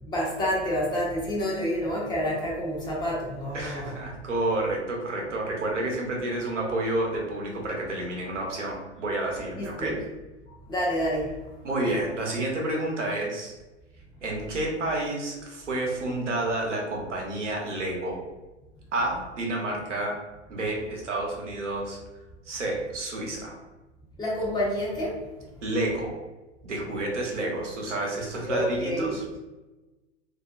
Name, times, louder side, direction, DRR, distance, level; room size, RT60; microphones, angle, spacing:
voice 1, 0.0-4.0 9.6-10.0 10.7-11.3 24.2-25.2 28.5-29.1, equal, 10° left, -4 dB, 0.5 m, -28 dB
voice 2, 3.5-10.0 11.6-13.5 14.2-18.2 18.9-20.2 20.5-22.0 22.5-23.6 25.6-26.1 26.6-29.2, right 2 dB, 85° right, -1 dB, 0.8 m, -30 dB
2.5 x 2.1 x 2.4 m, 1.1 s
hypercardioid pair, 105°, 35 cm